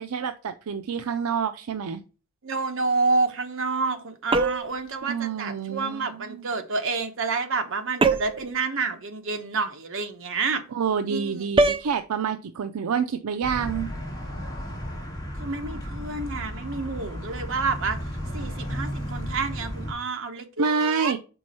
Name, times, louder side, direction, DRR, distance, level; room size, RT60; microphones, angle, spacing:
voice 1, 0.0-2.0 5.1-6.4 10.7-13.9 20.6-21.2, right 6 dB, 75° right, 0.5 m, -28 dB
voice 2, 2.4-10.6 11.0-11.5 15.4-18.0 18.3-21.1, right 4 dB, 60° right, 1.0 m, -29 dB
sound 1, 4.3-4.8 8.0-8.5 11.6-11.9, right 3 dB, 25° right, 0.4 m, -22 dB
sound 2, 13.4-19.9, equal, 20° left, 2.2 m, -34 dB
5.2 x 4.6 x 5.5 m
head